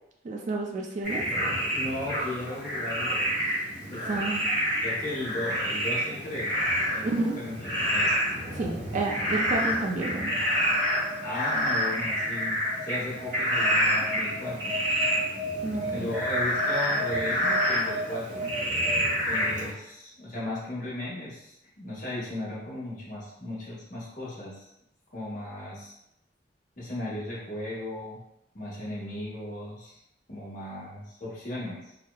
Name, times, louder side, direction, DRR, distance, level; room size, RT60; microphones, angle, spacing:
voice 1, 0.2-1.2 4.0-4.4 7.0-7.4 8.5-10.3 15.6-16.1, right 2 dB, 40° right, 0 dB, 0.3 m, -30 dB
Frog, 1.0-19.7, equal, 80° right, 1.3 m, -28 dB
voice 2, 1.7-3.6 3.9-4.1 4.8-8.1 11.2-14.8 15.9-18.5 19.3-24.6 25.1-25.9 26.8-28.2 28.5-29.9 30.3-31.9, left 1 dB, 45° left, -7 dB, 1.0 m, -36 dB
2.9 x 2.0 x 2.2 m, 0.83 s
head